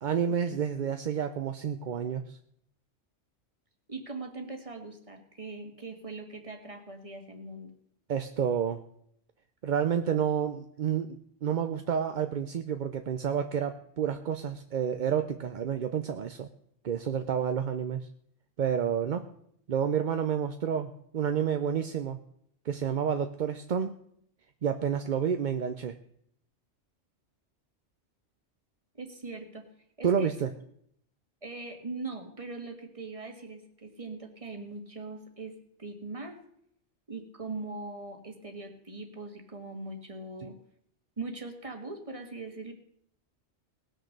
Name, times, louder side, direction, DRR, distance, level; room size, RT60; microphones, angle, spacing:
voice 1, 0.0-2.4 8.1-8.8 9.6-16.5 16.8-18.1 18.6-19.2 19.7-22.2 22.6-23.9 24.6-26.0 30.0-30.5 40.4-40.5, right 8 dB, 50° right, 8 dB, 0.7 m, -29 dB
voice 2, 3.9-7.7 28.9-29.6 30.0-30.3 31.4-35.5 35.8-36.4 37.1-40.5 41.2-42.7, right 3 dB, 30° right, 5 dB, 1.7 m, -41 dB
19.0 x 6.4 x 6.5 m, 0.71 s
omnidirectional pair, 1.2 m